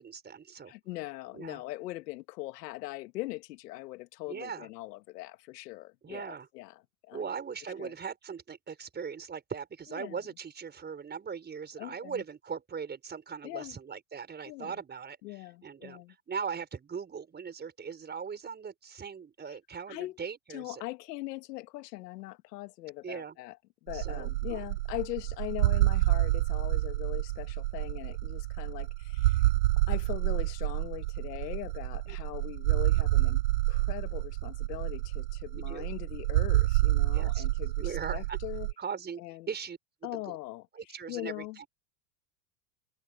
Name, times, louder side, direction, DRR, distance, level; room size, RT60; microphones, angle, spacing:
voice 1, 0.0-0.7 1.3-1.6 4.3-4.7 6.0-6.5 7.1-20.8 23.0-23.4 23.9-24.6 32.1-32.2 35.5-35.9 37.1-37.4 37.8-38.4 38.8-39.2 39.5-40.4 40.7-41.7, right 6 dB, 20° right, 5.3 m, -40 dB
voice 2, 0.7-7.3 7.8-7.9 9.9-10.2 11.8-12.2 13.4-13.8 14.4-14.8 15.2-16.1 19.9-20.2 20.5-23.6 23.8-29.5 29.9-33.4 33.7-38.7 39.2-39.5 40.0-41.6, left 19 dB, 80° left, 2.5 m, -41 dB
sound 1, 23.9-38.7, right 18 dB, 85° right, 1.3 m, -28 dB
open air
supercardioid pair, 125°, 47 cm